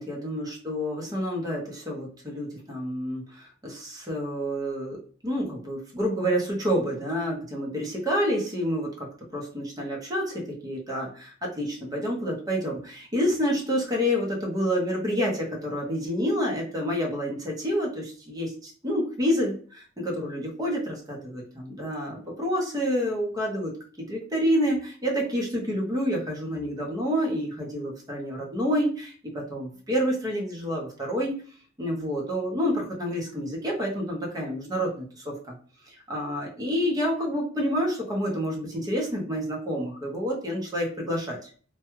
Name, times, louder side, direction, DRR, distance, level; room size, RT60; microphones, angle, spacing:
voice 1, 0.0-5.0 5.2-9.1 9.3-23.7 24.1-31.3 31.8-35.5 35.9-41.5, equal, 20° right, -2 dB, 0.9 m, -28 dB
3.0 x 2.3 x 3.1 m, 0.42 s
head